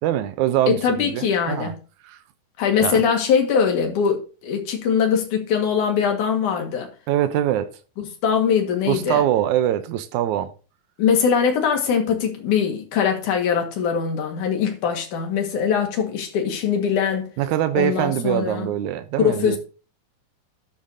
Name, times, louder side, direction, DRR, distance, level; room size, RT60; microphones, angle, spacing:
voice 1, 0.0-1.7 2.0-2.2 2.8-3.0 7.1-7.7 8.9-10.5 17.4-19.6, right 12 dB, 80° right, 1.7 m, -23 dB
voice 2, 0.7-1.8 2.6-6.9 8.0-9.2 11.0-17.3 17.7-18.7 19.2-19.6, left 7 dB, 60° left, 3.0 m, -22 dB
13.0 x 8.6 x 2.8 m
omnidirectional pair, 4.5 m